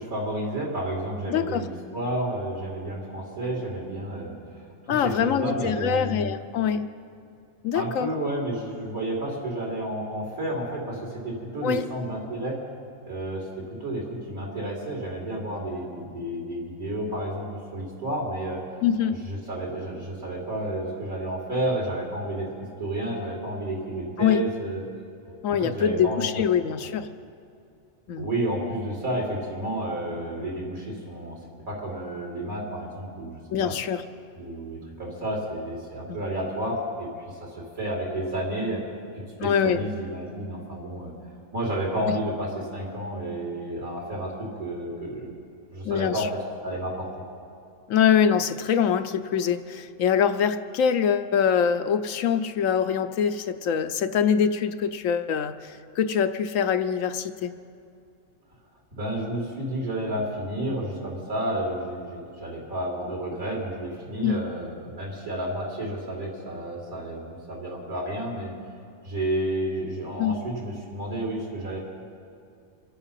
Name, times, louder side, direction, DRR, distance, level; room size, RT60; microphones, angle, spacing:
voice 1, 0.0-4.3 5.0-6.3 7.7-12.6 13.0-18.6 19.2-22.5 22.8-24.8 25.6-26.2 26.8-26.9 28.1-31.4 31.7-33.8 34.4-38.8 39.1-41.1 41.5-45.3 45.7-46.3 46.6-47.1 59.0-68.5 69.0-71.8, right 1 dB, 85° right, -4 dB, 4.6 m, -31 dB
voice 2, 1.3-1.7 4.9-6.9 7.6-8.1 11.6-11.9 18.8-19.2 24.2-24.4 25.4-27.1 28.1-28.3 33.5-34.0 36.1-36.2 39.4-39.9 42.1-42.2 45.8-46.3 47.9-57.5 64.2-64.4 70.2-70.4, left 8 dB, 75° left, 10 dB, 1.0 m, -24 dB
26.5 x 9.0 x 5.7 m, 2.5 s
omnidirectional pair, 1.4 m